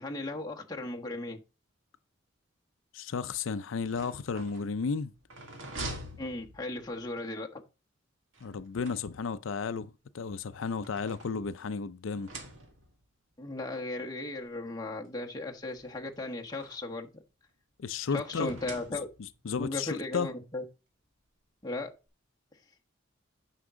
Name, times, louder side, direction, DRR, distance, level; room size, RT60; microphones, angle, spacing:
voice 1, 0.0-1.4 6.2-7.6 13.4-17.1 18.1-19.1 19.6-20.6 21.6-21.9, left 2 dB, 20° left, 1.2 m, -36 dB
voice 2, 2.9-5.1 8.4-12.3 17.8-18.5 19.4-20.3, left 5 dB, 80° left, 0.5 m, -33 dB
sound 1, 3.7-7.0 8.3-9.5 10.3-11.7 12.1-13.0 14.0-14.1 14.4-14.5 15.7-17.0 18.2-19.4, right 2 dB, 80° right, 2.0 m, -46 dB
9.7 x 5.9 x 3.7 m
head